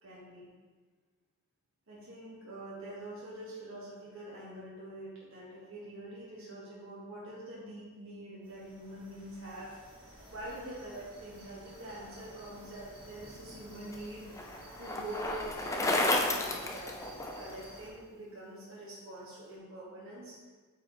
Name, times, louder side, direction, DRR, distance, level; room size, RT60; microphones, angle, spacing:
voice 1, 0.0-0.5 1.9-9.8 10.3-17.0 17.4-20.4, right 1 dB, 60° right, -7 dB, 1.4 m, -45 dB
sound 1, 8.4-17.9, equal, 20° right, 1.4 m, -52 dB
Bicycle, 13.2-17.6, left 2 dB, 15° left, 0.4 m, -32 dB
8.4 x 4.7 x 3.0 m, 1.5 s
head